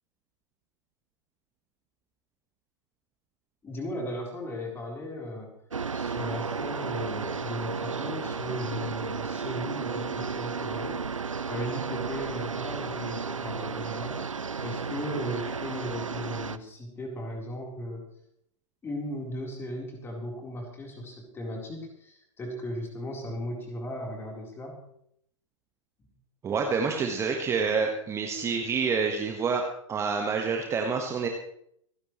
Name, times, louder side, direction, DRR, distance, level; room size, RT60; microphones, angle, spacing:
voice 1, 3.6-5.5 5.9-11.0 11.5-14.3 14.6-18.0 18.8-24.8, left 1 dB, 15° left, 0 dB, 4.0 m, -37 dB
sound 1, 5.7-16.6, right 5 dB, 75° right, 0.7 m, -33 dB
voice 2, 26.4-31.3, right 5 dB, 15° right, 3 dB, 1.5 m, -28 dB
27.0 x 10.5 x 3.2 m, 0.71 s
figure-of-eight pair, 105°, 16 cm